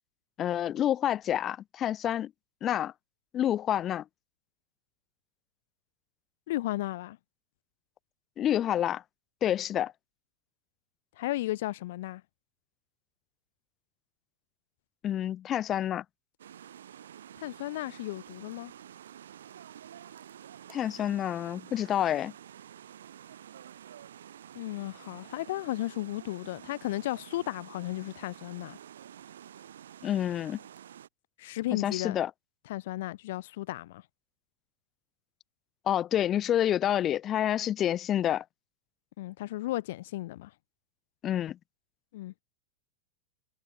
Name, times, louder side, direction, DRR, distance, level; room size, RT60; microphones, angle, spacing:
voice 1, 0.4-2.3 2.6-2.9 3.3-4.0 8.4-9.0 9.4-9.9 15.0-16.0 20.7-22.3 30.0-30.6 31.7-32.3 35.9-38.4 41.2-41.6, left 11 dB, 30° left, 0.6 m, -28 dB
voice 2, 6.5-7.2 11.2-12.2 17.4-18.7 24.5-28.8 31.4-32.2 32.7-34.0 39.2-40.5 42.1-42.3, left 16 dB, 55° left, 0.9 m, -34 dB
sound 1, 16.4-31.1, right 10 dB, 65° right, 3.5 m, -49 dB
figure-of-eight pair, 90°, 0 cm